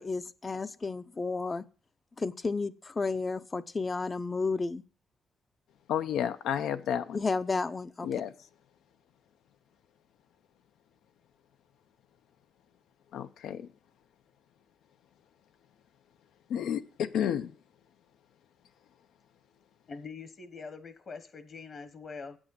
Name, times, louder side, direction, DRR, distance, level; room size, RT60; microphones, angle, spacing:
voice 1, 0.0-1.6 2.2-4.8 7.1-8.1, left 4 dB, 25° left, 0.6 m, -32 dB
voice 2, 5.9-7.2 8.0-8.3 13.1-13.7 16.5-17.5, left 9 dB, 80° left, 0.7 m, -31 dB
voice 3, 19.9-22.4, left 4 dB, 45° left, 1.2 m, -43 dB
8.2 x 6.3 x 7.8 m
cardioid pair, 115°, 0 cm